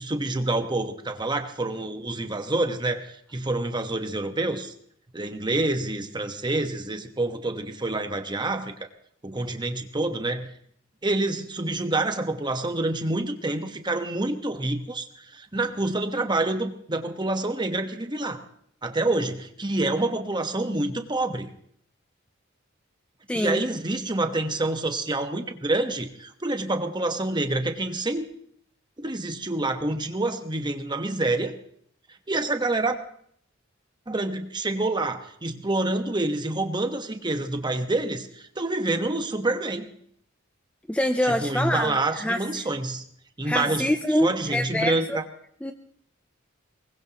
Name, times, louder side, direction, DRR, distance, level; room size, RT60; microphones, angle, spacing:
voice 1, 0.0-4.7 5.1-8.7 9.2-10.5 11.0-18.4 18.8-21.5 23.3-28.2 29.0-31.6 32.3-33.0 34.1-39.9 41.2-43.0 43.4-45.2, right 2 dB, 25° right, 6 dB, 1.3 m, -27 dB
voice 2, 23.3-23.6 40.9-42.4 43.4-45.2 45.6-45.7, left 1 dB, 5° left, 6 dB, 0.6 m, -25 dB
23.5 x 20.0 x 3.0 m, 0.65 s
head